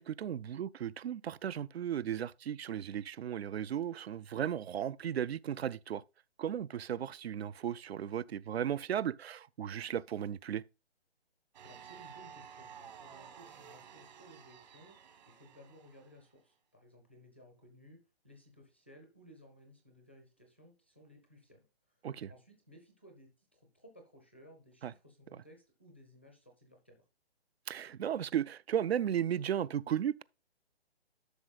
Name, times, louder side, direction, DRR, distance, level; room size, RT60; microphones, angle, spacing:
voice 1, 0.0-6.0 6.4-10.6 22.0-22.3 24.8-24.9 27.7-30.2, right 9 dB, 70° right, 0.5 m, -35 dB
sound 1, 11.5-16.2, right 8 dB, 40° right, 1.3 m, -53 dB
voice 2, 11.6-22.0 22.3-27.0, equal, 10° left, 0.4 m, -59 dB
11.5 x 6.2 x 2.3 m
hypercardioid pair, 170°, 32 cm